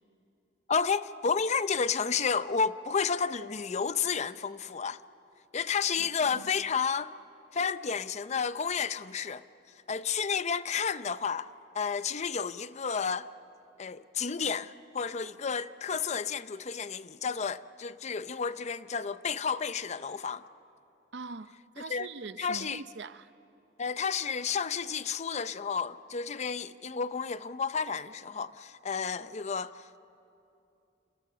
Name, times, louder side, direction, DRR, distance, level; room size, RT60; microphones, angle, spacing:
voice 1, 0.7-5.0 5.5-7.1 7.5-9.4 9.9-11.5 11.7-13.3 13.8-20.4 21.9-22.1 22.4-22.8 23.8-29.8, left 6 dB, 40° left, 0.6 m, -31 dB
voice 2, 6.0-6.5 21.1-23.3, right 4 dB, 70° right, 0.7 m, -43 dB
28.5 x 28.0 x 6.8 m
head